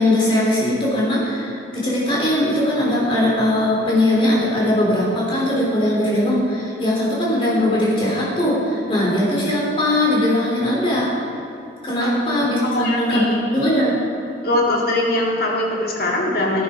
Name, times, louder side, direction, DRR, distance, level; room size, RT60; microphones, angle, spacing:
voice 1, 0.0-11.1 11.8-14.0, left 1 dB, 30° left, -5 dB, 3.4 m, -20 dB
voice 2, 12.6-13.4 14.4-16.6, left 1 dB, 55° left, -2 dB, 2.1 m, -21 dB
13.0 x 10.0 x 4.9 m, 2.9 s
head